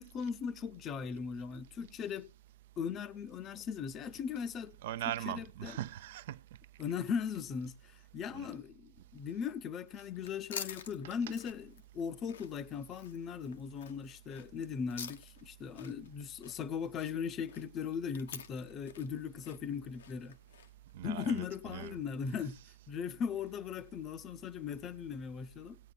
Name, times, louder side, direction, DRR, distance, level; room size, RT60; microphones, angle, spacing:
voice 1, 0.0-2.3 2.8-4.8 5.3-5.8 6.8-20.4 21.0-22.6 22.9-25.8, left 6 dB, 25° left, 0.6 m, -38 dB
voice 2, 4.8-6.4 8.3-8.5 20.9-22.0, right 13 dB, 50° right, 0.6 m, -40 dB
sound 1, 9.9-22.1, left 7 dB, 60° left, 0.8 m, -49 dB
19.0 x 8.8 x 2.3 m
hypercardioid pair, 120°, 0 cm